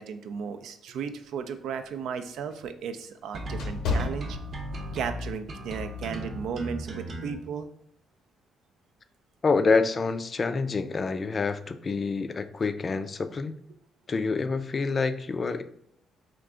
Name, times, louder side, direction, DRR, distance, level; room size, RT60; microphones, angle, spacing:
voice 1, 0.0-4.4 4.9-7.7, right 6 dB, 80° right, 9 dB, 0.4 m, -35 dB
sound 1, 1.3-5.0 5.5-5.7 6.3-6.6, left 4 dB, 75° left, 0.6 m, -33 dB
sound 2, 3.3-7.3, equal, 55° right, 0.8 m, -36 dB
voice 2, 9.4-13.6 14.1-15.6, left 4 dB, 35° left, 10 dB, 0.3 m, -27 dB
3.7 x 2.4 x 3.6 m, 0.70 s
cardioid pair, 90°, 0 cm